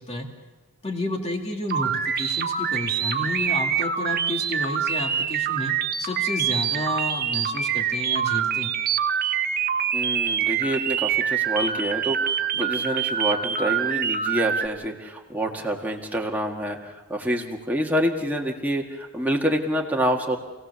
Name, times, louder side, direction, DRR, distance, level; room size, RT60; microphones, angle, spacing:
voice 1, 0.8-5.7 6.0-8.7, left 1 dB, 30° left, 2 dB, 2.4 m, -31 dB
sound 1, 1.7-14.7, right 7 dB, 45° right, 1.1 m, -25 dB
voice 2, 9.9-20.4, equal, 10° right, 0 dB, 1.8 m, -27 dB
27.5 x 17.0 x 6.9 m, 1.3 s
head